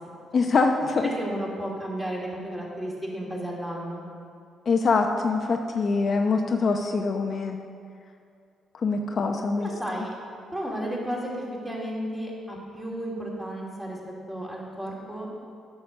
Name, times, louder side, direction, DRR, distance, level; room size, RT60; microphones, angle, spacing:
voice 1, 0.3-1.1 4.7-7.6 8.8-9.7, left 4 dB, 50° left, 3 dB, 0.7 m, -24 dB
voice 2, 1.2-4.0 9.6-10.1 10.5-14.0 14.3-15.3, right 1 dB, 10° right, -3 dB, 2.9 m, -33 dB
9.4 x 6.7 x 6.6 m, 2.4 s
cardioid pair, 90°, 0 cm